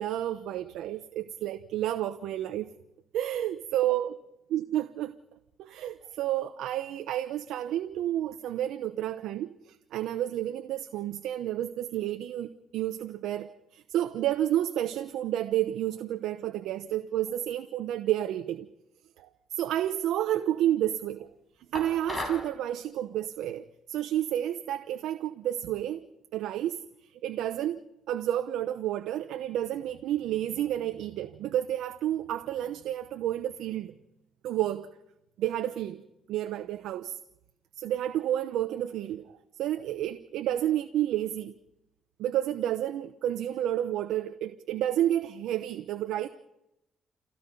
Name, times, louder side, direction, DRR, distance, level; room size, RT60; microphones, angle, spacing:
voice 1, 0.0-2.7 3.1-4.1 4.5-5.1 5.6-18.7 19.2-21.3 21.7-26.1 26.3-26.8 27.1-27.8 28.1-33.9 34.4-34.9 35.4-36.0 36.3-37.2 37.8-41.5 42.2-46.3, right 12 dB, 85° right, 0.9 m, -30 dB
sound 1, 21.7-22.5, left 2 dB, 20° left, 7.3 m, -35 dB
28.5 x 17.0 x 5.4 m
cardioid pair, 90°, 0 cm